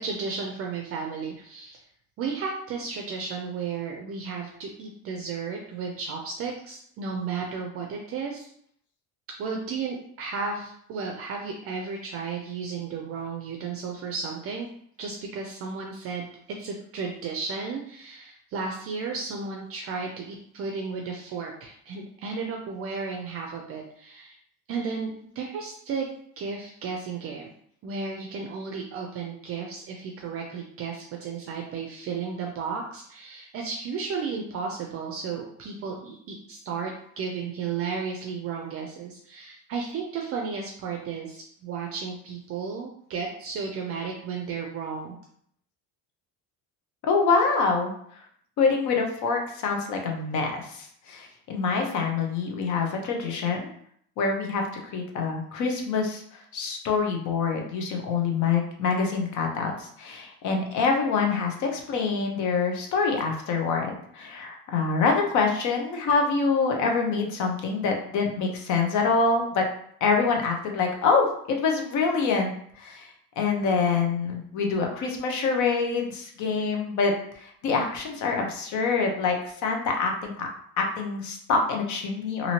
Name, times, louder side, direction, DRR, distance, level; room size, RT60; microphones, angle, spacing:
voice 1, 0.0-1.8 2.2-8.5 9.4-14.7 15.0-24.4 24.7-26.1 26.4-27.5 27.8-45.2, right 5 dB, 45° right, 0 dB, 0.4 m, -33 dB
voice 2, 47.0-48.2 48.6-53.7 54.2-54.6 54.9-56.2 56.5-69.6 70.0-80.5 80.8-82.5, left 4 dB, 60° left, 2 dB, 0.7 m, -26 dB
2.9 x 2.7 x 2.8 m, 0.65 s
cardioid pair, 160°, 33 cm